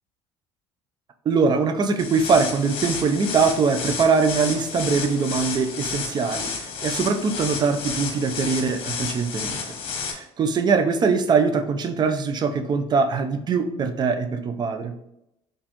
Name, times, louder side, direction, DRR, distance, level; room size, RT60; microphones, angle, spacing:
voice 1, 1.3-9.6 10.0-15.0, right 5 dB, 35° right, 8 dB, 0.5 m, -22 dB
sound 1, 2.0-10.1, left 5 dB, 50° left, 1.0 m, -31 dB
4.1 x 3.8 x 2.9 m, 0.83 s
supercardioid pair, 100°, 12 cm